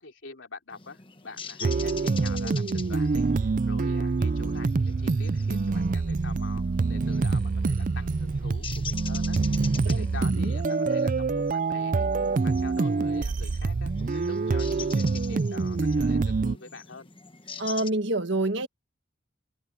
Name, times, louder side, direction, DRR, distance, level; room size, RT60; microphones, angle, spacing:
voice 1, 0.0-6.6 6.9-12.1 12.4-17.1, left 3 dB, 65° left, 3.2 m, -45 dB
sound 1, 0.7-17.9, left 6 dB, 25° left, 1.2 m, -44 dB
sound 2, 1.6-16.6, right 4 dB, 40° right, 0.4 m, -26 dB
voice 2, 9.7-10.5 17.6-18.7, right 2 dB, 60° right, 1.7 m, -28 dB
head